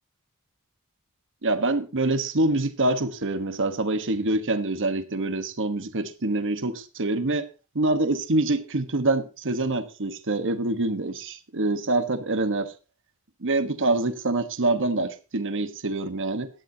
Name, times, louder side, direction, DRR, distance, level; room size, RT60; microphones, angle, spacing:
voice 1, 1.4-7.5 7.7-12.7 13.4-16.5, right 2 dB, 60° right, 1.2 m, -25 dB
17.5 x 11.5 x 2.8 m
head